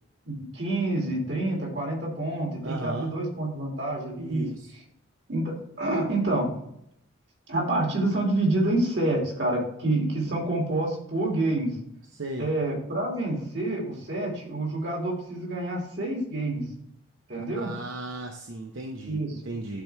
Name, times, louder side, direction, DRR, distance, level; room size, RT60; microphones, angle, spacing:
voice 1, 0.2-4.4 5.3-6.5 7.5-11.8 12.4-16.7 17.3-17.7 19.1-19.3, right 2 dB, 60° right, -1 dB, 2.6 m, -28 dB
voice 2, 2.6-3.1 4.2-4.7 12.1-12.5 17.4-19.8, right 2 dB, 80° right, 3 dB, 0.7 m, -35 dB
11.5 x 4.5 x 3.4 m, 0.74 s
head